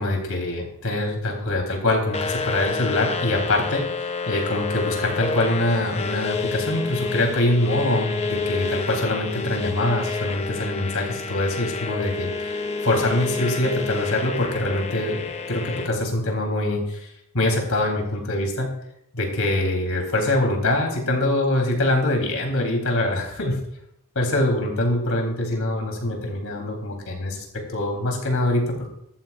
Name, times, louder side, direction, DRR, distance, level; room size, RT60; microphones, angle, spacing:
voice 1, 0.0-3.8 4.2-18.8 19.1-23.6 24.1-27.4 27.7-28.9, left 1 dB, 70° left, 1 dB, 3.5 m, -24 dB
sound 1, 2.1-15.9, left 4 dB, 30° left, 0.7 m, -29 dB
14.0 x 13.0 x 2.5 m, 0.78 s
head